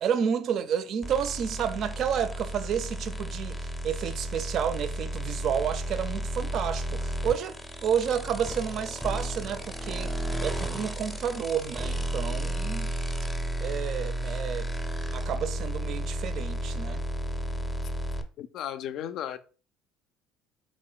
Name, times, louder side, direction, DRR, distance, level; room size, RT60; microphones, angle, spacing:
voice 1, 0.0-10.1 10.4-12.9 13.6-14.7 15.1-17.0, right 8 dB, 55° right, 0.4 m, -30 dB
sound 1, 1.0-18.2, equal, 5° left, 0.6 m, -33 dB
voice 2, 18.4-19.4, left 10 dB, 60° left, 0.4 m, -35 dB
3.7 x 3.0 x 3.9 m
cardioid pair, 115°, 0 cm